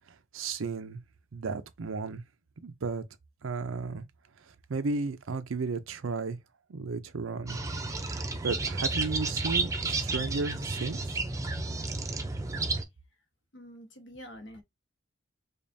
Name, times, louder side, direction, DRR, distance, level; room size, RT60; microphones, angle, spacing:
voice 1, 0.3-1.0 1.3-2.2 2.6-3.0 3.4-4.0 4.7-6.4 6.7-7.6 8.4-11.2, right 4 dB, 85° right, 0.6 m, -33 dB
sound 1, 7.5-12.8, right 3 dB, 15° right, 0.5 m, -32 dB
voice 2, 13.5-14.6, equal, 65° left, 1.2 m, -46 dB
5.1 x 2.4 x 2.6 m
head